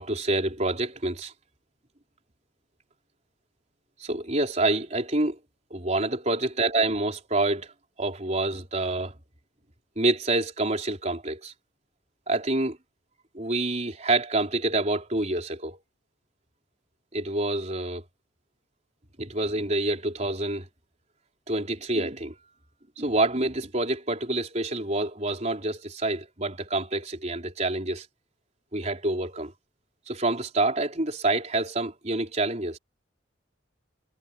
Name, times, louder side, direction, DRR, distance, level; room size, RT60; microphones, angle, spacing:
voice 1, 0.0-1.3 4.0-5.4 5.7-7.7 8.0-9.1 10.0-11.5 12.3-12.8 13.3-15.8 17.1-18.0 19.2-20.7 21.5-22.3 23.0-28.1 28.7-29.5 30.1-32.8, right 2 dB, 35° right, 4.0 m, -27 dB
head